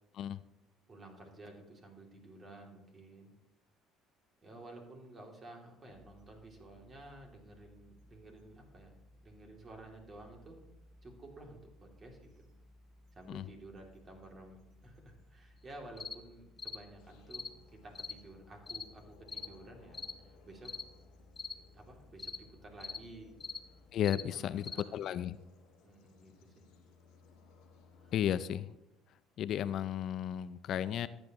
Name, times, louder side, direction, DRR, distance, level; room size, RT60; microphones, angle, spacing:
voice 1, 0.9-3.3 4.4-8.9 9.2-10.6 11.0-12.4 13.1-20.7 21.6-23.3 24.2-25.1 25.8-26.6 28.0-28.1, right 2 dB, 30° right, 1 dB, 2.7 m, -53 dB
sound 1, 5.9-23.9, left 1 dB, 65° right, 1.9 m, -62 dB
sound 2, 16.0-16.2 16.6-16.8 17.3-17.5 17.9-18.2 18.7-18.9 19.3-19.5 19.9-20.2 20.6-20.9 21.4-21.6 22.2-22.4 22.8-23.0 23.4-23.6 24.0-24.3 24.6-24.9, left 5 dB, 30° left, 0.7 m, -42 dB
sound 3, 17.0-28.4, left 5 dB, 80° left, 1.7 m, -62 dB
voice 2, 23.9-25.4 28.1-28.7 29.4-31.1, left 10 dB, 55° left, 15 dB, 0.4 m, -34 dB
14.0 x 9.8 x 3.0 m, 0.92 s
cardioid pair, 105°, 0 cm